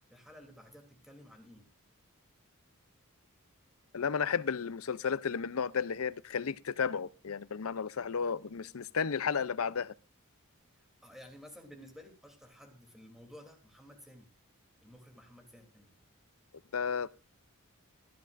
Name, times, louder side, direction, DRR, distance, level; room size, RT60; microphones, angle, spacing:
voice 1, 0.1-1.7 10.8-14.3 14.8-15.9, equal, ahead, 3.1 m, -54 dB
voice 2, 3.9-9.9 16.7-17.1, left 6 dB, 75° left, 0.6 m, -33 dB
23.0 x 11.0 x 2.6 m
head